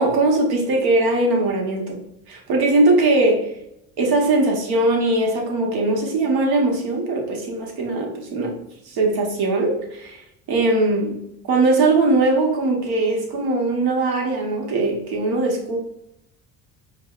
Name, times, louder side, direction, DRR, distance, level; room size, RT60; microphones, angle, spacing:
voice 1, 0.0-2.0 2.3-3.5 4.0-8.5 8.9-10.2 10.5-11.2 11.5-15.8, right 2 dB, 70° right, 0 dB, 1.1 m, -20 dB
4.7 x 2.1 x 2.4 m, 0.80 s
supercardioid pair, 95°, 40 cm